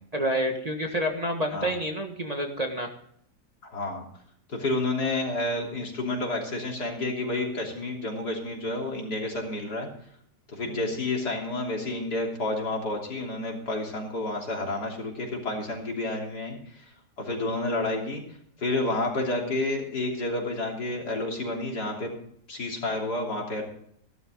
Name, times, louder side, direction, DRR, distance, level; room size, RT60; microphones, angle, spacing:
voice 1, 0.1-2.9 10.7-10.8, equal, 25° right, 3 dB, 1.6 m, -28 dB
voice 2, 3.6-4.0 4.5-9.9 10.5-16.8 17.2-18.2 18.6-22.1 22.5-23.6, left 2 dB, 75° left, -1 dB, 3.9 m, -30 dB
16.5 x 12.5 x 3.8 m, 0.67 s
omnidirectional pair, 1.7 m